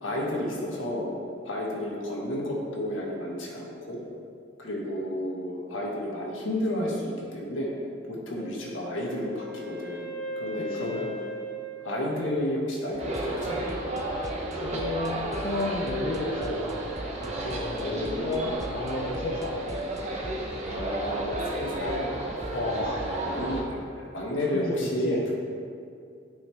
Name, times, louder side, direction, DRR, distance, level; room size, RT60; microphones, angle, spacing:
voice 1, 0.0-4.0 4.6-7.7 8.1-11.1 11.8-13.6 17.8-18.5 20.6-22.2 23.0-25.2, left 1 dB, 90° left, -3 dB, 1.5 m, -32 dB
Wind instrument woodwind instrument, 8.3-13.2, equal, 15° left, 1.2 m, -39 dB
voice 2, 10.6-11.0 14.5-16.8 17.2-19.6 22.5-23.1 24.5-25.2, left 2 dB, 50° left, -2 dB, 0.6 m, -32 dB
sound 1, 12.9-23.8, right 1 dB, 20° right, 0.4 m, -41 dB
sound 2, 13.0-23.6, right 1 dB, 35° right, 1.0 m, -33 dB
9.8 x 5.6 x 3.4 m, 2.4 s
head